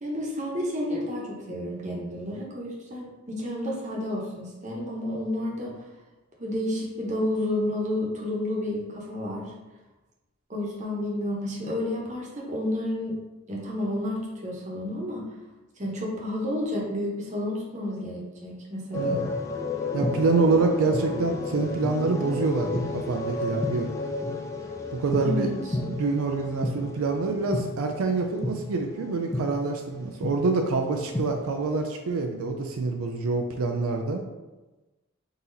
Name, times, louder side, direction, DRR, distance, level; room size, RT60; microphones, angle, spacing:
voice 1, 0.0-5.7 6.4-9.5 10.5-13.2 13.5-15.3 15.8-19.2 25.2-25.8, left 1 dB, 35° right, -3 dB, 0.9 m, -31 dB
sound 1, 18.9-29.7 30.2-30.3 30.8-31.3, left 2 dB, 15° left, 0.4 m, -31 dB
voice 2, 19.9-23.9 24.9-25.5 25.9-34.2, right 3 dB, 85° right, 3 dB, 0.4 m, -26 dB
3.9 x 2.9 x 3.9 m, 1.1 s
head